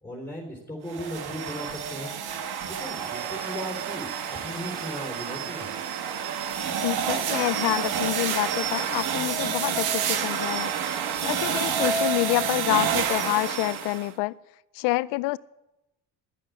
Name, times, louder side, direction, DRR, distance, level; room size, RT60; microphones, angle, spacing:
voice 1, 0.0-2.1 2.6-5.7, equal, 5° left, 3.6 m, -37 dB
sound 1, 0.9-14.1, right 7 dB, 70° right, 1.4 m, -29 dB
voice 2, 6.7-10.7 11.2-14.4 14.7-15.4, left 22 dB, 85° left, 0.5 m, -27 dB
11.5 x 7.6 x 9.8 m
cardioid pair, 95°, 40 cm